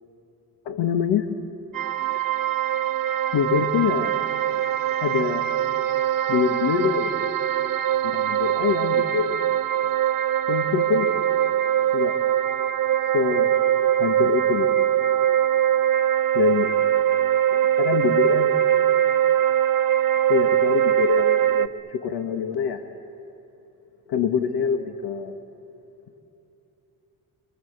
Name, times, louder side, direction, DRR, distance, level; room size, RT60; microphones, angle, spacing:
voice 1, 0.6-1.3 3.3-4.1 5.0-5.5 6.3-7.1 8.0-9.3 10.5-11.1 11.9-12.2 13.1-13.6 14.0-14.7 16.3-16.7 17.8-18.6 20.3-22.8 24.1-25.4, left 7 dB, 80° left, 7 dB, 1.6 m, -24 dB
sound 1, 1.7-21.7, right 11 dB, 60° right, 0.9 m, -22 dB
29.0 x 23.5 x 8.1 m, 3.0 s
cardioid pair, 105°, 39 cm